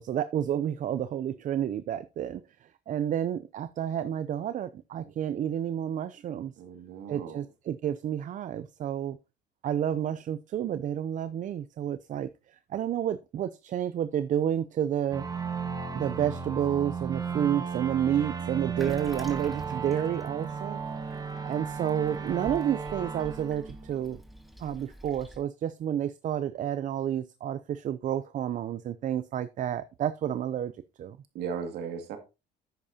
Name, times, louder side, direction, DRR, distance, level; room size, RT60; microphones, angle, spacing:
voice 1, 0.0-2.4 2.9-6.5 7.1-9.2 9.6-15.2 15.9-20.8 21.4-24.2 24.6-30.7 31.0-31.2, right 10 dB, 50° right, 0.5 m, -30 dB
voice 2, 6.6-7.5 31.3-32.2, right 6 dB, 80° right, 2.1 m, -37 dB
sound 1, 15.1-24.4, right 5 dB, 20° right, 1.4 m, -35 dB
Toilet flush, 18.8-25.4, equal, ahead, 2.0 m, -48 dB
10.5 x 8.6 x 2.8 m
cardioid pair, 110°, 17 cm